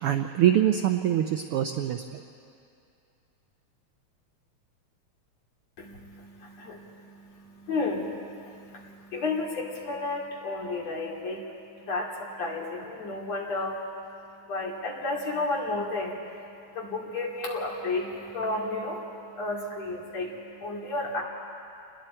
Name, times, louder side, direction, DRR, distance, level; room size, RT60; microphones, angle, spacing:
voice 1, 0.0-2.2, right 11 dB, 80° right, 6 dB, 1.2 m, -24 dB
voice 2, 5.8-21.2, left 2 dB, 65° left, -2 dB, 3.9 m, -33 dB
29.0 x 21.0 x 4.5 m, 2.5 s
omnidirectional pair, 3.3 m